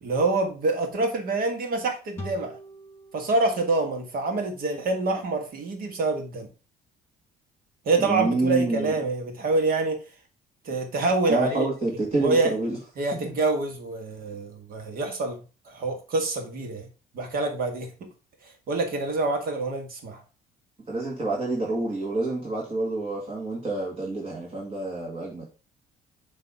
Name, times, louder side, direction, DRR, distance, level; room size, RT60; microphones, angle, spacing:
voice 1, 0.0-2.5 3.1-6.5 7.9-10.0 10.7-11.7 12.2-12.5 13.0-16.9 17.1-17.9 18.7-20.2, right 3 dB, 60° right, 4 dB, 1.9 m, -26 dB
sound 1, 2.2-5.5, left 1 dB, 15° left, 3.0 m, -45 dB
voice 2, 8.0-8.9 11.3-12.8 20.9-25.5, right 2 dB, 35° right, -4 dB, 2.2 m, -27 dB
6.8 x 3.4 x 5.0 m, 0.34 s
cardioid pair, 110°, 17 cm